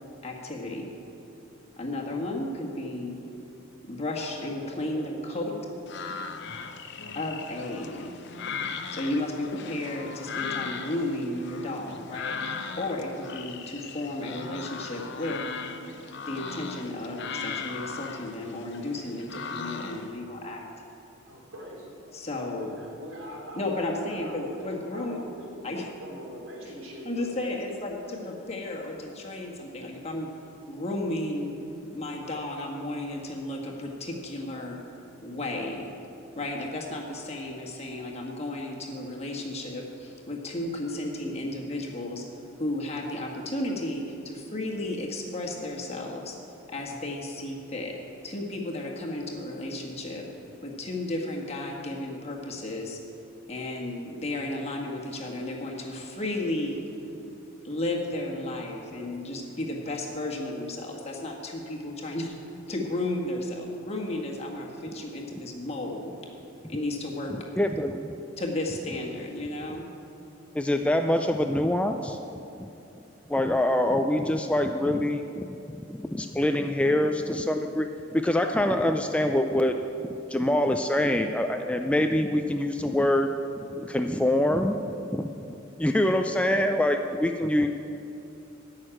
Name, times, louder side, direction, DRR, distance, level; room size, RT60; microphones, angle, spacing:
voice 1, 0.2-0.9 1.8-3.2 3.9-5.5 7.1-8.1 8.9-12.4 12.8-15.4 16.3-20.6 22.1-22.7 23.5-25.2 25.6-25.9 27.0-30.3 30.7-31.6 31.9-34.8 35.2-35.9 36.3-42.2 42.6-46.4 46.7-47.9 48.2-50.3 50.6-53.0 53.5-56.8 57.6-62.4 62.7-66.2 66.7-67.3 68.4-69.9, left 1 dB, 30° left, -1 dB, 1.6 m, -33 dB
voice 2, 4.0-5.4 21.2-22.1 22.4-25.6 26.0-27.8, equal, 80° right, -3 dB, 3.3 m, -42 dB
sound 1, 5.9-20.2, left 5 dB, 55° left, 0.7 m, -38 dB
voice 3, 67.6-68.0 70.5-72.2 72.6-72.7 73.3-75.5 75.9-79.8 80.3-83.3 83.8-85.3 85.8-87.7, left 1 dB, 5° left, 5 dB, 0.4 m, -25 dB
13.5 x 6.5 x 8.9 m, 2.8 s
head